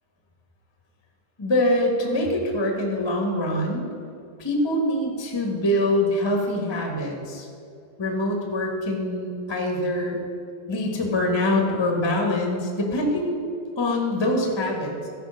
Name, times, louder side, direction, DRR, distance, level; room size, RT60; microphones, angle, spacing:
voice 1, 1.4-3.9 4.4-7.5 8.0-10.2 10.7-13.3 13.8-15.1, left 1 dB, 20° left, 0 dB, 0.6 m, -24 dB
13.5 x 5.1 x 6.4 m, 2.6 s
omnidirectional pair, 3.4 m